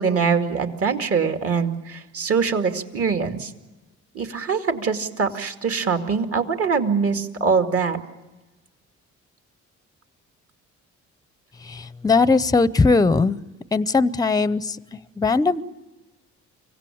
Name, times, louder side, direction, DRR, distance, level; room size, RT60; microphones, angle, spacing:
voice 1, 0.0-3.5 4.1-8.0, right 5 dB, 50° right, 6 dB, 2.3 m, -23 dB
voice 2, 11.6-13.4 13.7-14.8 15.2-15.6, left 3 dB, 10° left, 17 dB, 0.7 m, -19 dB
25.5 x 17.0 x 8.6 m, 1.2 s
cardioid pair, 90°, 30 cm